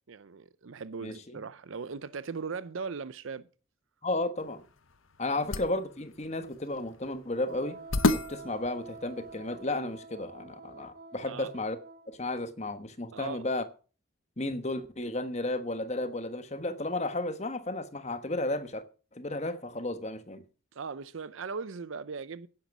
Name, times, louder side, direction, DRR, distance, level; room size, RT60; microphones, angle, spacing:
voice 1, 0.1-3.5 5.3-5.4 11.2-11.5 13.1-13.5 20.7-22.5, right 5 dB, 75° right, 0.6 m, -39 dB
voice 2, 4.0-4.6 5.2-7.8 8.1-11.8 12.1-13.6 14.4-18.8 19.1-20.4, left 2 dB, 35° left, 1.3 m, -33 dB
sound 1, 4.4-9.8, left 2 dB, 75° left, 1.0 m, -33 dB
Wind instrument woodwind instrument, 7.4-12.2, right 3 dB, 40° right, 1.3 m, -48 dB
10.5 x 10.5 x 6.1 m
head